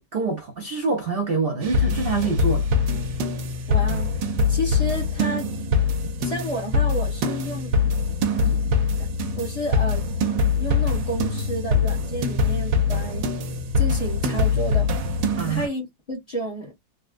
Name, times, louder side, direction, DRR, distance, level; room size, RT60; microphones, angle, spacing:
voice 1, 0.0-2.7 15.4-15.7, right 4 dB, 65° right, 0.5 m, -25 dB
sound 1, 1.6-15.7, left 3 dB, 85° right, 1.4 m, -23 dB
voice 2, 3.7-4.1 4.5-5.5 6.2-7.7 8.4-8.6 9.4-10.1 10.6-13.3 13.7-14.9 15.5-16.7, equal, 25° left, 1.2 m, -31 dB
3.8 x 2.2 x 2.4 m
omnidirectional pair, 1.9 m